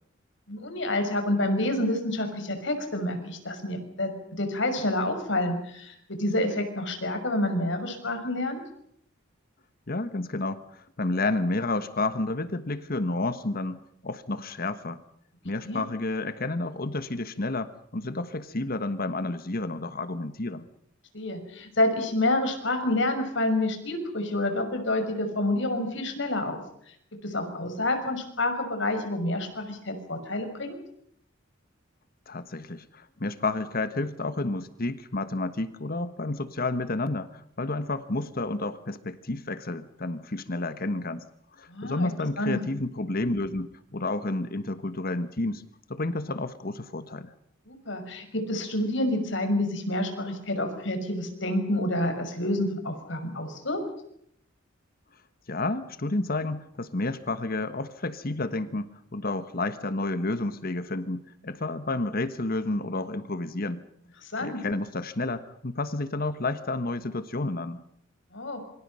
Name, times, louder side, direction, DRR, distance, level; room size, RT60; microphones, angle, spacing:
voice 1, 0.5-4.1 4.4-8.6 15.6-15.8 21.1-26.6 27.2-30.8 41.7-42.6 47.7-53.8 64.3-64.6 68.3-68.6, left 1 dB, 65° left, 6 dB, 6.0 m, -28 dB
voice 2, 9.9-15.0 15.4-20.7 32.3-41.2 41.6-45.6 45.9-47.3 55.5-63.8 64.4-67.8, left 2 dB, 50° left, 12 dB, 1.4 m, -30 dB
27.0 x 25.5 x 5.7 m, 0.70 s
head